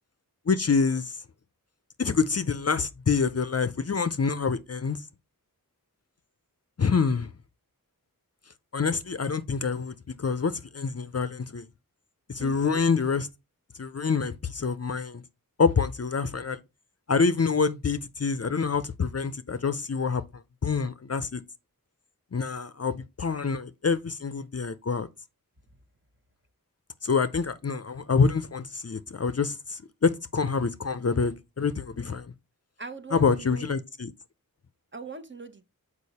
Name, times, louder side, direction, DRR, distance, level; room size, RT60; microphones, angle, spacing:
voice 1, 0.5-1.2 2.0-5.0 6.8-7.3 8.7-11.6 12.3-13.3 13.8-15.2 15.6-16.6 17.1-20.2 20.6-21.4 22.3-25.1 27.0-32.3 33.1-34.1, left 5 dB, 45° left, 0.6 m, -26 dB
voice 2, 12.4-12.8 32.8-33.7 34.9-35.6, right 3 dB, 30° right, 1.1 m, -40 dB
6.6 x 4.9 x 4.1 m
wide cardioid pair, 55°, 35 cm